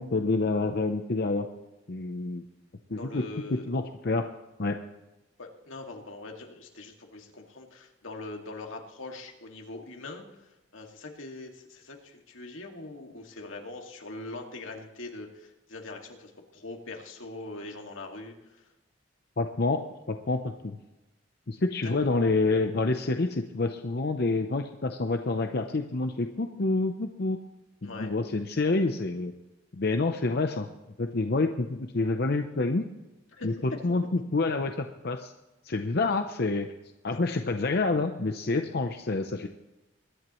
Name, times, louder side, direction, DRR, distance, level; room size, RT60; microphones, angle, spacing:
voice 1, 0.0-1.5 1.9-2.4 2.9-3.2 3.7-4.3 4.6-4.7 19.4-20.8 21.5-27.4 27.8-29.3 29.7-30.7 31.0-32.8 33.4-33.5 33.8-35.3 35.6-36.7 37.0-39.5, left 3 dB, 50° left, 6 dB, 0.7 m, -28 dB
voice 2, 3.0-3.8 5.4-18.7 21.8-22.1 27.8-28.1 33.3-33.6 37.1-37.2, left 2 dB, 85° left, 2 dB, 2.2 m, -42 dB
23.0 x 11.0 x 3.1 m, 1.0 s
head